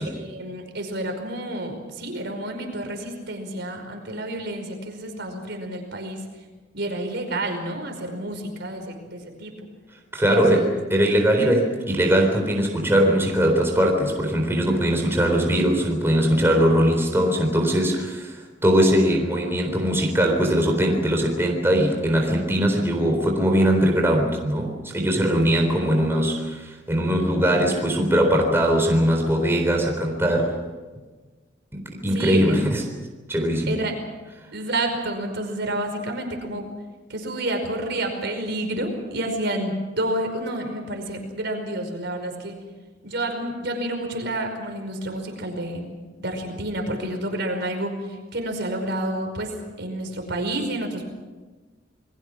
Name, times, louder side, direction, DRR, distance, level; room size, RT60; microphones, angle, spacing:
voice 1, 0.1-6.2 6.7-9.5 10.3-10.7 29.3-29.6 32.1-32.6 33.7-33.9 34.5-36.6 37.1-42.5 43.0-45.9 46.2-49.5 49.8-51.0, right 1 dB, 65° right, 4 dB, 5.2 m, -29 dB
voice 2, 10.1-18.4 18.6-30.5 31.7-32.8 33.3-33.8, equal, 15° right, 1 dB, 4.0 m, -21 dB
29.0 x 21.5 x 6.2 m, 1.3 s
head